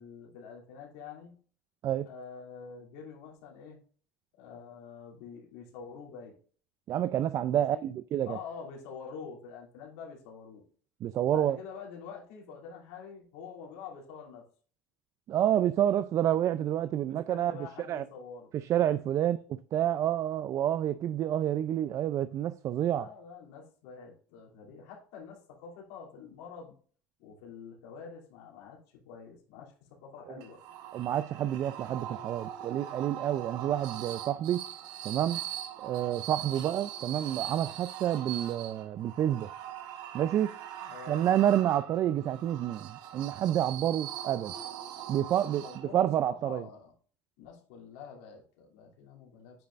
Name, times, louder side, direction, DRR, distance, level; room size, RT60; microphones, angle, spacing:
voice 1, 0.0-1.3 2.0-3.8 4.4-6.3 7.4-7.9 8.2-10.6 11.3-14.4 17.0-18.5 22.8-26.7 27.2-30.6 40.8-41.4 45.3-46.9 47.4-49.7, left 6 dB, 80° left, 2.8 m, -46 dB
voice 2, 6.9-8.4 11.0-11.6 15.3-17.6 17.9-18.0 18.5-23.1 30.9-34.6 35.0-35.4 35.8-39.5 40.1-40.5 41.1-44.5 45.1-45.7 45.9-46.7, right 11 dB, 45° right, 0.4 m, -28 dB
sound 1, 30.4-46.1, right 11 dB, 70° right, 1.1 m, -42 dB
9.1 x 5.4 x 2.5 m
supercardioid pair, 115°, 7 cm